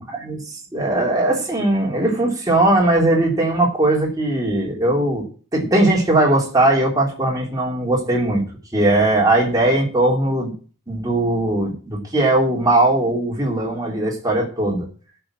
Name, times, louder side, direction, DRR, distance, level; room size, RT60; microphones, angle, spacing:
voice 1, 0.1-5.2 5.5-8.4 8.7-10.5 10.9-14.9, right 1 dB, 15° right, -2 dB, 3.2 m, -19 dB
11.5 x 5.9 x 7.5 m, 0.39 s
head